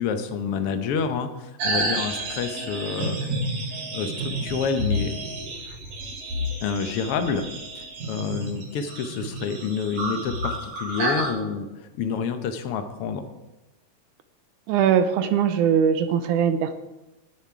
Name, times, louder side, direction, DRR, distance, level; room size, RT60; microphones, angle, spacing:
voice 1, 0.0-3.3 3.9-5.1 6.6-7.5 7.8-11.7 11.9-13.3, left 6 dB, 75° left, 7 dB, 1.3 m, -28 dB
sound 1, 1.6-11.3, right 1 dB, 60° right, 4.0 m, -30 dB
voice 2, 14.7-16.7, right 8 dB, 80° right, 10 dB, 2.0 m, -21 dB
18.0 x 7.2 x 4.7 m, 1.0 s
omnidirectional pair, 3.8 m